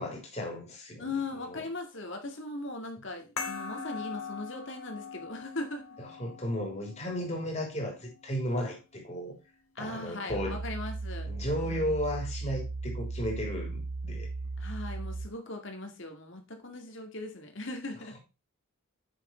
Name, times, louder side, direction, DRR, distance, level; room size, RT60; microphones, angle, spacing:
voice 1, 0.0-1.1 1.4-1.6 6.0-9.3 9.8-10.6 11.3-14.3, equal, 30° left, 3.1 m, -34 dB
voice 2, 1.0-5.9 9.8-11.3 11.6-11.9 14.6-18.1, left 2 dB, 55° left, 2.1 m, -39 dB
sound 1, 3.4-8.4, left 5 dB, 80° left, 2.5 m, -42 dB
sound 2, 10.3-15.3, right 3 dB, 65° right, 0.5 m, -36 dB
8.4 x 6.4 x 4.4 m
head